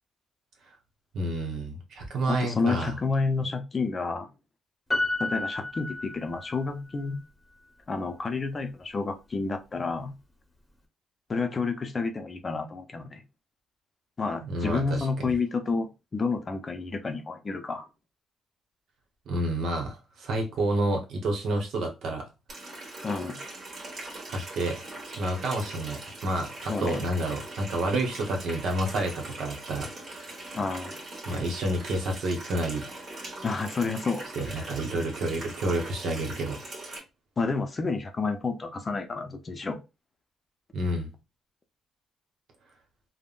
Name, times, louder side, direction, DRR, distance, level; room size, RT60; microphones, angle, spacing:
voice 1, 1.1-2.9 14.4-15.3 19.3-22.3 24.3-24.8 25.2-30.3 31.3-33.0 34.3-36.6 40.7-41.1, right 1 dB, 70° right, 1.0 m, -29 dB
voice 2, 2.3-4.3 5.2-7.2 7.9-10.1 11.3-13.2 14.2-17.9 23.0-23.4 26.7-27.0 30.5-31.0 33.4-34.2 37.4-39.8, left 4 dB, 35° left, 0.5 m, -30 dB
Piano, 4.9-6.7 7.0-7.1, left 2 dB, 10° left, 0.9 m, -31 dB
Water tap faucet, 22.5-37.0, right 2 dB, 50° right, 1.4 m, -41 dB
3.5 x 2.1 x 2.4 m
cardioid pair, 90°, 0 cm